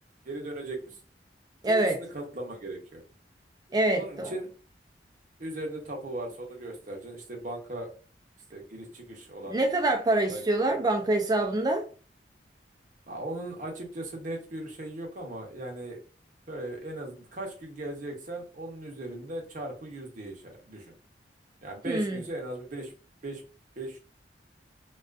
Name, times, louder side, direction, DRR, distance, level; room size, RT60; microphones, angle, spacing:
voice 1, 0.2-1.0 1.7-3.0 4.0-4.5 5.4-7.9 8.5-9.6 10.3-10.4 13.1-16.0 16.5-20.9 21.6-22.9 23.2-23.4 23.8-24.0, right 1 dB, 50° right, 0.8 m, -38 dB
voice 2, 1.6-2.0 3.7-4.3 9.5-11.9 21.8-22.2, right 2 dB, 20° right, 0.4 m, -25 dB
2.4 x 2.3 x 2.4 m
head